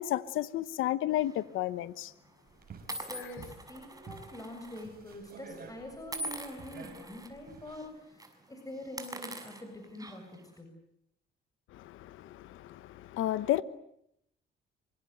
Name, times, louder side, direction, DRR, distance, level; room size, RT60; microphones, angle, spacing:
voice 1, 0.0-2.1 11.7-13.6, left 13 dB, 90° left, 1.2 m, -32 dB
sound 1, 1.2-1.5 2.3-2.4 2.9-4.8 5.1-5.3 6.1-7.3 7.7-7.9 8.2-8.3 8.8-10.4, right 1 dB, 20° right, 6.5 m, -43 dB
sound 2, 2.5-7.8, right 5 dB, 50° right, 7.1 m, -51 dB
voice 2, 2.9-10.8, left 1 dB, 15° left, 7.4 m, -45 dB
27.0 x 25.5 x 8.1 m
cardioid pair, 90°, 20 cm